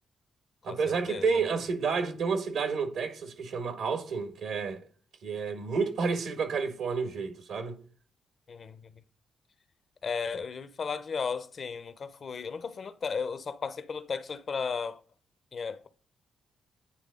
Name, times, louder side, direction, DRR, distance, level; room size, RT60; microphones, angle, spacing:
voice 1, 0.6-4.8 5.2-7.8, right 5 dB, 75° right, 1.1 m, -30 dB
voice 2, 8.5-9.0 10.0-15.0 15.5-15.9, left 5 dB, 55° left, 0.6 m, -35 dB
9.1 x 3.3 x 3.6 m
supercardioid pair, 60°, 0 cm